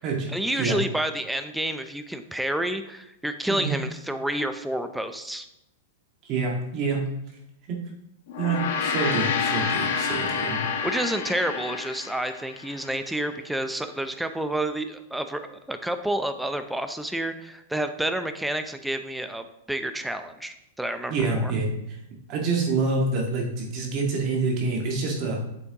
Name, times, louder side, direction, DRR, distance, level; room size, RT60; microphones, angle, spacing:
voice 1, 0.3-5.5 10.8-21.1 21.4-21.5, right 1 dB, 5° right, 9 dB, 0.5 m, -29 dB
voice 2, 6.2-7.1 7.7-7.8 8.4-10.6 21.1-22.0 22.3-25.4, right 3 dB, 40° right, 0 dB, 1.7 m, -27 dB
Gong, 8.3-12.9, left 5 dB, 65° left, 1.4 m, -28 dB
8.4 x 7.0 x 2.9 m, 0.85 s
hypercardioid pair, 140°, 0 cm